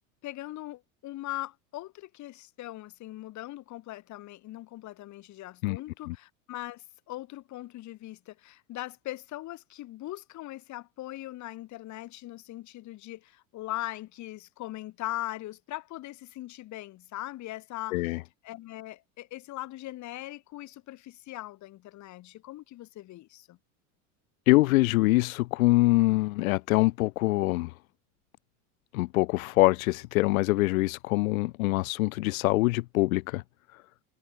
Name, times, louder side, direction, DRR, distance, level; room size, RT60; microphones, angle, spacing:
voice 1, 0.2-18.1 18.4-23.6, left 16 dB, 45° left, 1.7 m, -40 dB
voice 2, 24.5-27.7 28.9-33.4, left 20 dB, 85° left, 0.5 m, -24 dB
supercardioid pair, 105°, 41 cm